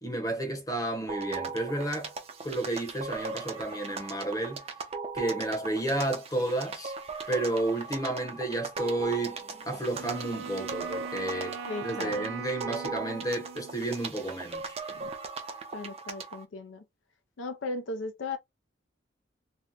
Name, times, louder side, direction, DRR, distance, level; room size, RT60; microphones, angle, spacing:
voice 1, 0.0-2.1 2.4-4.6 5.1-6.9 7.3-14.7, right 2 dB, 20° left, 0.8 m, -31 dB
sound 1, 1.1-16.4, right 4 dB, 30° right, 0.5 m, -39 dB
Wind instrument woodwind instrument, 9.9-14.1, right 6 dB, 85° right, 0.4 m, -40 dB
voice 2, 11.7-12.2 14.9-15.1 15.7-16.8 17.4-18.4, left 3 dB, 80° left, 0.5 m, -37 dB
2.8 x 2.1 x 3.5 m
head